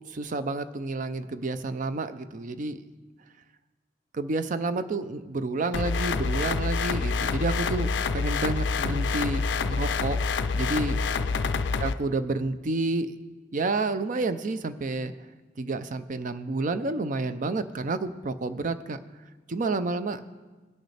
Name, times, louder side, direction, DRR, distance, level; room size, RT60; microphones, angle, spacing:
voice 1, 0.1-2.8 4.1-10.2 10.5-11.0 11.8-13.1 13.5-15.1 15.6-19.0 19.5-20.2, right 3 dB, 45° right, 11 dB, 0.5 m, -30 dB
sound 1, 5.7-11.9, left 4 dB, 70° left, 0.4 m, -27 dB
19.0 x 6.5 x 3.3 m, 1.3 s
head